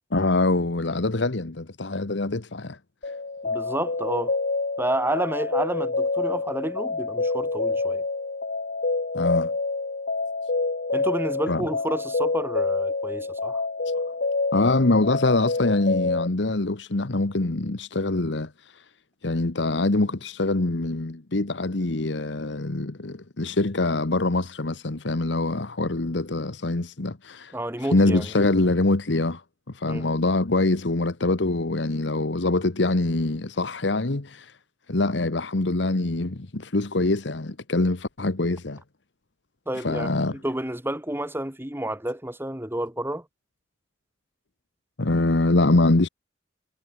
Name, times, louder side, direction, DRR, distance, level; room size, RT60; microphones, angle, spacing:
voice 1, 0.1-2.8 3.1-3.2 9.1-9.5 11.5-11.6 14.5-18.8 19.2-27.5 27.9-29.4 29.7-34.5 34.9-38.8 39.8-40.4 45.0-46.1, left 2 dB, 75° left, 1.2 m, -24 dB
sound 1, 3.0-16.3, left 3 dB, 55° left, 1.1 m, -27 dB
voice 2, 3.4-4.4 4.8-8.0 10.9-13.6 27.5-28.3 29.8-30.1 39.7-43.2, right 1 dB, 15° right, 3.1 m, -30 dB
head